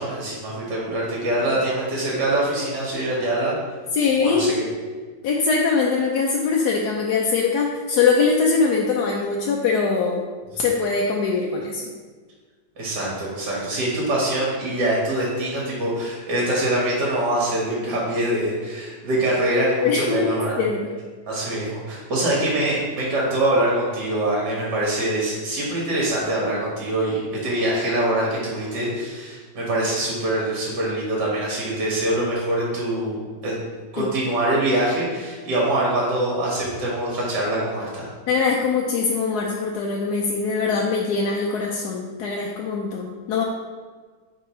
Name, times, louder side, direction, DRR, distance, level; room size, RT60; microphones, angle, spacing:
voice 1, 0.0-3.5 4.2-4.6 12.8-20.6 21.3-33.6 33.9-38.1, right 1 dB, 65° right, -4 dB, 2.1 m, -24 dB
voice 2, 3.9-4.5 5.2-10.2 10.6-11.9 19.8-20.3 20.6-20.9 34.0-34.1 38.3-43.4, left 5 dB, 70° left, -1 dB, 1.1 m, -22 dB
9.2 x 3.8 x 3.1 m, 1.5 s
omnidirectional pair, 2.0 m